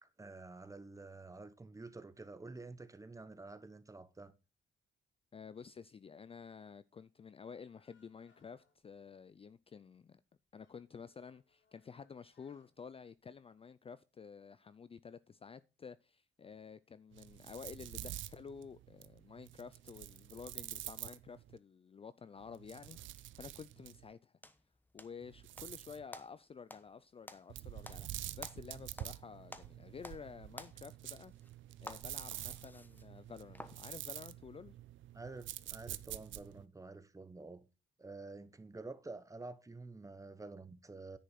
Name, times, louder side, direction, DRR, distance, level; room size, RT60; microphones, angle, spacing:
voice 1, 0.0-4.3 28.7-28.8 35.1-37.7 38.0-41.2, right 3 dB, 15° right, 1.0 m, -49 dB
voice 2, 5.3-10.2 10.5-24.3 24.9-31.3 31.8-34.7, left 6 dB, 30° left, 0.4 m, -51 dB
sound 1, 7.5-9.6 9.9-10.0 10.4-13.6, left 6 dB, 75° left, 5.8 m, -76 dB
sound 2, 17.1-21.6 22.4-24.1 25.2-26.0 27.5-36.7, right 14 dB, 75° right, 0.6 m, -48 dB
sound 3, 24.4-25.7 26.1-29.2 29.5-30.3 30.5-33.8, left 1 dB, 10° left, 1.1 m, -52 dB
10.0 x 5.2 x 5.9 m
cardioid pair, 90°, 20 cm